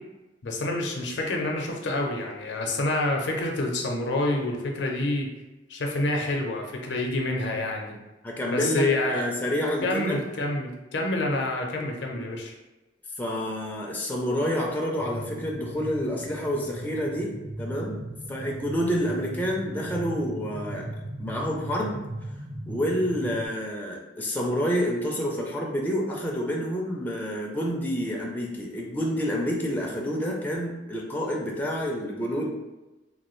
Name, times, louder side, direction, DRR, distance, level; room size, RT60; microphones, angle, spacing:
voice 1, 0.4-5.3 5.7-8.0 8.5-9.2 9.8-12.5, left 2 dB, 75° left, 1 dB, 0.6 m, -27 dB
voice 2, 8.2-10.2 13.2-17.3 17.6-18.0 18.3-20.9 21.2-22.0 22.7-32.6, equal, 10° left, -2 dB, 0.4 m, -28 dB
sound 1, 15.0-23.5, right 1 dB, 35° right, 0.7 m, -37 dB
3.1 x 2.2 x 3.0 m, 1.1 s
head